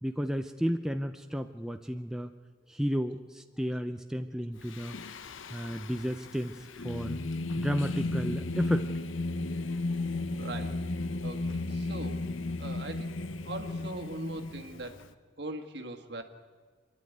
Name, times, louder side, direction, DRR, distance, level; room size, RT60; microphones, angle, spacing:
voice 1, 0.0-2.3 2.7-5.0 5.5-7.2 7.6-8.9, equal, 5° right, 6 dB, 0.5 m, -33 dB
Singing, 4.6-15.1, left 2 dB, 80° left, 0.8 m, -34 dB
sound 1, 10.0-15.1, left 1 dB, 40° left, 1.0 m, -53 dB
voice 2, 10.3-10.9 11.2-12.3 12.6-15.1 15.4-16.2, right 2 dB, 55° right, 4 dB, 1.7 m, -41 dB
26.0 x 10.5 x 9.3 m, 1.5 s
head